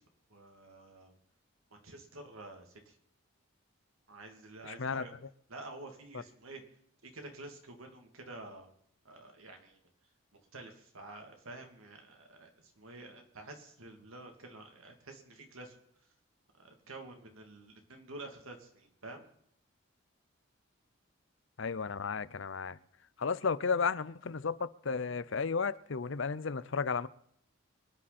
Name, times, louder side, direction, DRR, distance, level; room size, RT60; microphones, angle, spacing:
voice 1, 0.3-1.1 1.7-2.9 4.1-5.1 5.5-6.6 7.0-8.7 9.0-9.8 10.5-12.5 12.8-15.8 16.6-19.3, right 2 dB, 80° right, 2.8 m, -49 dB
voice 2, 4.6-5.0 21.6-22.8 23.2-27.1, left 5 dB, 60° left, 0.6 m, -33 dB
24.5 x 10.0 x 4.3 m
head